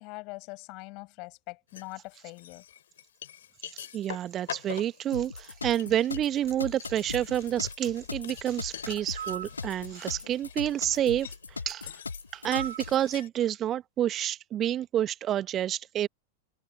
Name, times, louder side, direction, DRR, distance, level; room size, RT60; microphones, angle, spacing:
voice 1, 0.0-2.6, left 27 dB, 45° left, 6.6 m, -43 dB
sound 1, 1.7-1.9 2.4-13.3, left 10 dB, 60° left, 4.9 m, -45 dB
voice 2, 3.7-11.9 12.3-16.1, right 11 dB, 30° right, 1.3 m, -29 dB
sound 2, 5.1-13.0, left 4 dB, 80° left, 2.0 m, -39 dB
sound 3, 9.1-9.6 12.5-12.9, right 9 dB, 65° right, 3.2 m, -37 dB
figure-of-eight pair, 90°, 0 cm